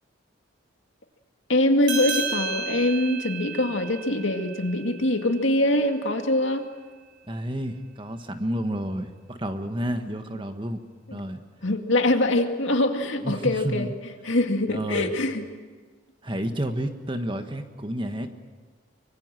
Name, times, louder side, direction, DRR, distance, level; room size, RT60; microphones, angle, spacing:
voice 1, 1.5-6.6 11.1-11.2 11.6-13.9 14.2-15.5, left 1 dB, 65° left, 5 dB, 2.2 m, -23 dB
sound 1, 1.8-6.7, right 5 dB, 65° right, 7.0 m, -34 dB
voice 2, 7.3-10.8 11.1-11.4 13.2-13.9 14.7-15.1 16.2-18.4, equal, 25° right, 7 dB, 1.5 m, -30 dB
25.0 x 23.5 x 7.7 m, 1.4 s
head